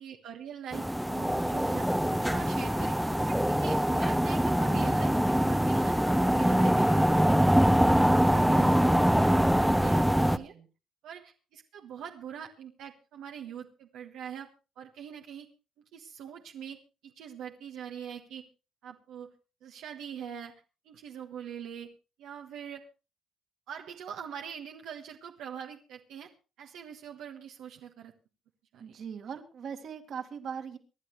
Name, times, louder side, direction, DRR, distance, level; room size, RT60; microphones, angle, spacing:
voice 1, 0.0-1.9 2.2-7.5 7.9-9.3 9.8-10.5 11.0-14.5 14.8-15.5 15.9-16.8 17.0-18.4 18.8-19.3 19.6-21.9 22.2-22.8 23.7-26.3 26.6-28.1 28.7-29.0, right 8 dB, 85° right, 2 dB, 1.4 m, -43 dB
sound 1, 0.7-10.4, equal, ahead, 0.8 m, -24 dB
voice 2, 10.1-10.7 28.8-30.8, right 7 dB, 60° right, 8 dB, 2.0 m, -41 dB
25.5 x 11.0 x 3.2 m, 0.32 s
cardioid pair, 90°, 0 cm